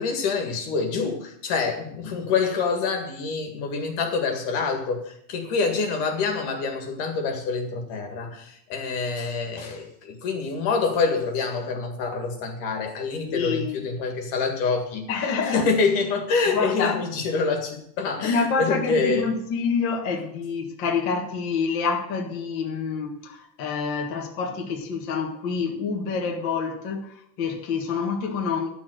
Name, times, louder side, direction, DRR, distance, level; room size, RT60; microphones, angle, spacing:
voice 1, 0.0-15.1 15.4-19.3, left 4 dB, 65° left, 3.3 m, -26 dB
voice 2, 13.2-13.9 15.1-15.7 16.5-17.0 18.2-28.7, left 5 dB, 45° left, 1.6 m, -27 dB
12.0 x 7.2 x 7.7 m
omnidirectional pair, 4.1 m